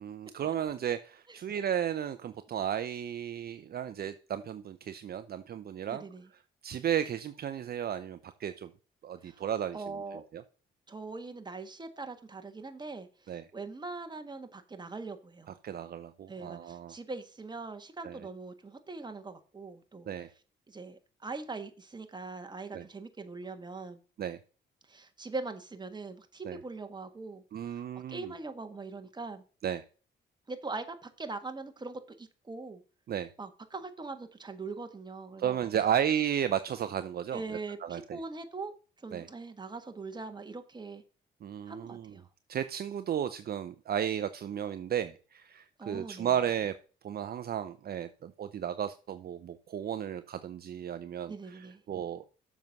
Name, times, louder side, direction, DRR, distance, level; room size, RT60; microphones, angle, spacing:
voice 1, 0.0-6.0 6.6-8.7 9.0-10.4 13.3-13.4 15.6-16.9 18.0-18.2 20.1-20.3 22.7-22.8 24.2-24.4 26.4-26.6 27.5-28.3 29.6-29.8 33.1-33.3 35.4-38.2 39.1-39.3 41.4-42.1 42.5-46.7 47.0-52.2, right 9 dB, 50° right, 0.7 m, -34 dB
voice 2, 5.9-6.3 9.2-9.4 9.7-10.2 10.9-15.6 16.3-20.1 20.7-24.0 24.9-27.4 27.9-29.4 30.5-32.8 33.4-35.6 37.3-38.7 39.0-41.0 41.6-42.2 45.8-46.3 51.3-51.8, right 3 dB, 20° right, 1.6 m, -42 dB
7.2 x 6.1 x 5.4 m
cardioid pair, 90°, 20 cm